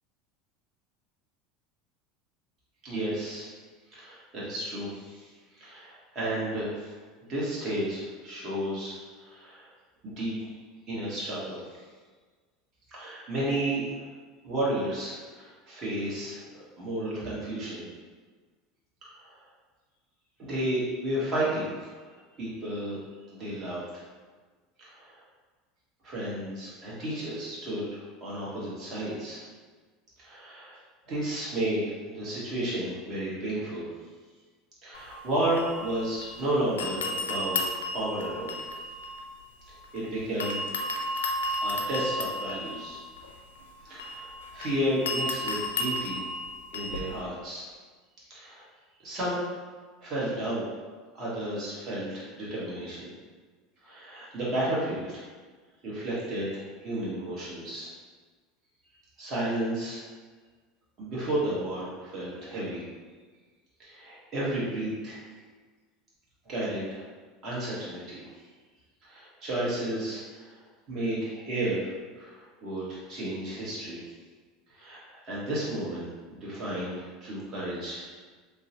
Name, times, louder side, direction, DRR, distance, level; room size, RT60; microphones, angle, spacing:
voice 1, 2.8-3.5 3.9-5.3 5.5-7.0 7.3-9.7 10.0-10.3 10.9-11.8 12.9-14.1 14.4-17.8 19.2-19.3 20.4-22.1 22.4-23.0 23.3-24.0 24.8-25.2 26.0-29.4 30.2-30.8 31.1-33.9 34.8-38.5 39.9-40.6 41.6-43.0 43.8-46.2 46.7-47.7 48.3-48.6 49.0-49.4 50.0-50.7 51.2-53.1 53.8-55.3 55.8-57.9 59.2-60.0 61.0-62.8 63.8-65.2 66.4-67.0 67.4-68.2 69.0-70.5 70.9-74.0 74.7-78.1, right 1 dB, 40° right, -7 dB, 1.3 m, -32 dB
sound 1, 34.9-36.4 36.8-40.0 40.4-47.2, left 1 dB, 70° left, 0.4 m, -34 dB
5.2 x 2.2 x 2.8 m, 1.4 s
figure-of-eight pair, 75°, 0 cm